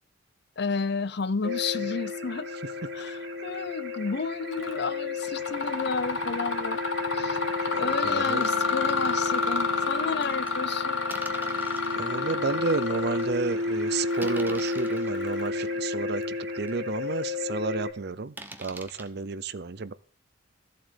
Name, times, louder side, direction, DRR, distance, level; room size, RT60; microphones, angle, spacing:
voice 1, 0.6-2.5 2.9-6.8 7.1-11.0, left 4 dB, 55° left, 0.6 m, -32 dB
sound 1, 1.4-17.9, left 3 dB, 80° right, 2.9 m, -32 dB
Mechanisms, 4.5-4.9 5.2-15.8, left 4 dB, 75° left, 1.4 m, -30 dB
voice 2, 7.7-8.5 11.9-19.9, right 4 dB, 55° right, 0.6 m, -31 dB
sound 2, 8.4-8.6 9.2-9.3 10.2-10.5 11.1-12.0 12.6-12.7 13.2-13.4 14.2-15.1 15.8-15.9 16.4-16.5 16.7-16.8 18.4-19.1, right 2 dB, 10° right, 1.0 m, -43 dB
14.0 x 7.6 x 5.1 m
head